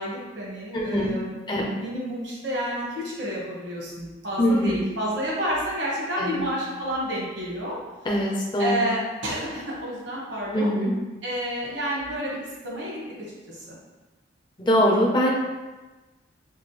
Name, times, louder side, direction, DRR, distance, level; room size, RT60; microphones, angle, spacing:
voice 1, 0.0-7.8 8.6-10.7 11.2-12.4 12.6-13.0 13.5-13.7, equal, 75° right, -5 dB, 1.3 m, -30 dB
voice 2, 0.7-1.2 1.5-1.7 4.4-4.8 6.2-6.4 8.0-8.8 10.5-10.9 14.6-15.3, equal, 25° left, -3 dB, 0.6 m, -22 dB
5.2 x 2.0 x 3.3 m, 1.2 s
head